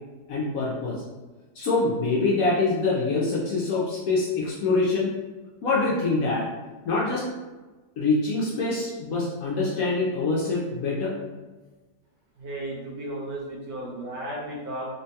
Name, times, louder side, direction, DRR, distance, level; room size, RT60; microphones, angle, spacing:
voice 1, 0.3-1.0 1.6-5.1 5.6-6.5 6.8-7.2 8.0-11.1, left 3 dB, 70° left, -5 dB, 0.8 m, -25 dB
voice 2, 12.4-14.9, right 1 dB, 85° right, -3 dB, 1.5 m, -34 dB
3.7 x 2.2 x 2.7 m, 1.2 s
omnidirectional pair, 1.9 m